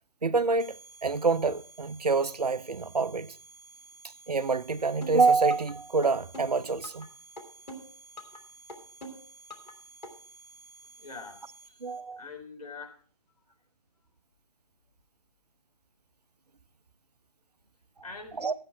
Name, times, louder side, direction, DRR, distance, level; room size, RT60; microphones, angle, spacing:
voice 1, 0.2-3.3 4.3-7.1 11.8-12.2 18.4-18.5, right 4 dB, 75° right, 0.7 m, -26 dB
sound 1, 0.6-12.0, right 3 dB, 5° right, 1.4 m, -53 dB
sound 2, 5.0-5.7 6.0-7.1 7.4-8.4 8.7-9.7 10.0-10.1, equal, 85° left, 3.0 m, -43 dB
voice 2, 11.0-13.0 18.0-18.5, left 4 dB, 65° left, 3.8 m, -45 dB
14.0 x 8.8 x 4.4 m
figure-of-eight pair, 135°, 21 cm